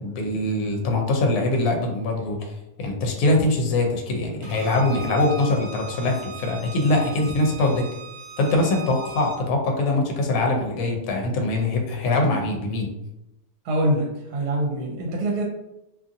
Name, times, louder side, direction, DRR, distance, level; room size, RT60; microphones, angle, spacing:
voice 1, 0.0-2.5 2.8-7.8 8.4-12.9, left 2 dB, 70° left, 1 dB, 1.0 m, -23 dB
Bowed string instrument, 4.4-9.4, right 3 dB, 60° right, 1.0 m, -40 dB
voice 2, 13.6-15.4, right 1 dB, 80° right, -1 dB, 1.1 m, -24 dB
2.7 x 2.5 x 2.5 m, 0.89 s
omnidirectional pair, 1.7 m